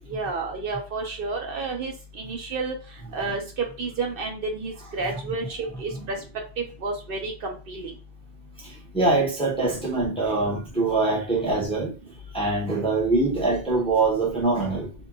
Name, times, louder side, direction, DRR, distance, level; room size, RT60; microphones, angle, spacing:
voice 1, 0.1-2.7 3.1-6.2 6.6-7.9, right 3 dB, 65° right, 0.7 m, -30 dB
voice 2, 8.6-11.9 12.3-14.9, right 3 dB, 5° left, 0.6 m, -24 dB
2.7 x 2.2 x 2.6 m
omnidirectional pair, 1.1 m